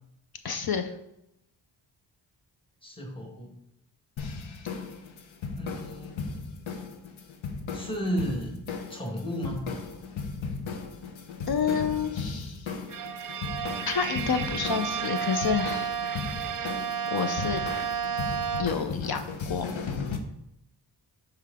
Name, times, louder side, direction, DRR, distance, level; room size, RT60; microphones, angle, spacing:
voice 1, 0.4-0.9 11.5-12.7 13.9-16.0 17.1-17.6 18.6-19.7, left 6 dB, 55° left, 8 dB, 0.7 m, -29 dB
voice 2, 2.8-3.5 5.5-6.3 7.7-8.6 8.9-9.7, equal, 10° left, 0 dB, 1.5 m, -33 dB
sound 1, 4.2-20.2, left 5 dB, 80° left, 0.9 m, -36 dB
Bowed string instrument, 12.9-19.0, right 7 dB, 45° right, 0.6 m, -32 dB
7.5 x 4.6 x 3.7 m, 0.81 s
wide cardioid pair, 85°, 46 cm